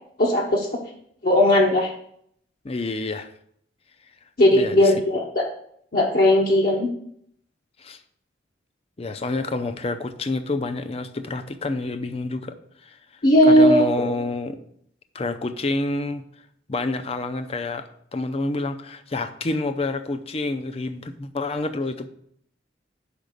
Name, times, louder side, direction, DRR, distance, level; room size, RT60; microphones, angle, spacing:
voice 1, 0.2-0.7 1.2-1.9 4.4-5.5 5.9-6.9 13.2-14.0, left 1 dB, 50° left, -1 dB, 0.9 m, -17 dB
voice 2, 2.6-3.3 4.5-4.8 7.8-8.0 9.0-12.6 12.9-13.0 13.5-14.6 15.1-16.2 16.7-17.8 18.1-22.1, left 2 dB, 35° left, 9 dB, 0.5 m, -28 dB
5.2 x 4.9 x 6.4 m, 0.67 s
head